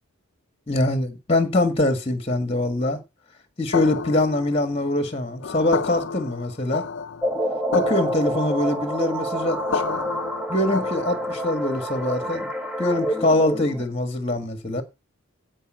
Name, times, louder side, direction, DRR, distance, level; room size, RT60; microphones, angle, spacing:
voice 1, 0.7-3.0 3.6-6.8 7.7-10.0 10.5-12.5 12.8-14.8, left 1 dB, 25° left, 1.7 m, -23 dB
sound 1, 3.7-11.5, left 5 dB, 55° left, 0.6 m, -31 dB
sound 2, 7.2-13.8, right 1 dB, 5° right, 1.5 m, -28 dB
15.5 x 5.2 x 7.6 m
head